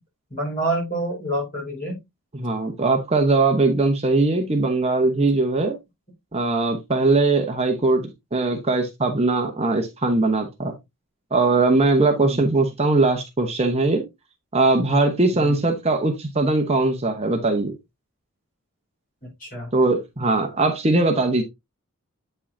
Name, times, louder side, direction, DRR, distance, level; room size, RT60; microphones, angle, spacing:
voice 1, 0.3-2.0 12.2-12.4 15.3-15.6 19.4-19.7, right 1 dB, 40° left, 4.8 m, -27 dB
voice 2, 2.3-5.8 6.3-8.0 8.3-10.7 11.3-14.0 14.5-17.7 19.7-21.4, right 3 dB, 30° right, 0.9 m, -20 dB
8.4 x 5.5 x 2.7 m
head